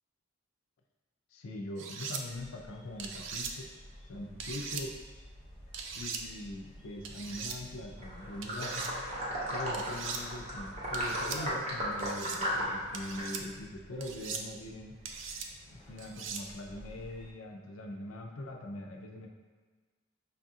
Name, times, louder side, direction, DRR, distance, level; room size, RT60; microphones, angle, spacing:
voice 1, 1.3-3.7 4.1-5.0 5.9-8.9 9.5-15.0 15.7-19.3, left 1 dB, 80° left, 1 dB, 0.5 m, -42 dB
sound 1, 1.8-2.2 3.0-3.5 4.4-4.8 5.7-6.2 7.0-7.6 8.4-8.9 9.7-10.2 10.9-11.4 12.0-12.4 12.9-13.4 14.0-14.4 15.0-15.5 16.0-16.4, right 6 dB, 65° right, 0.3 m, -40 dB
sound 2, 2.2-17.3, left 1 dB, 25° left, 0.8 m, -52 dB
sound 3, 8.0-13.2, equal, 30° right, 0.7 m, -35 dB
5.4 x 2.4 x 2.7 m, 1.4 s
head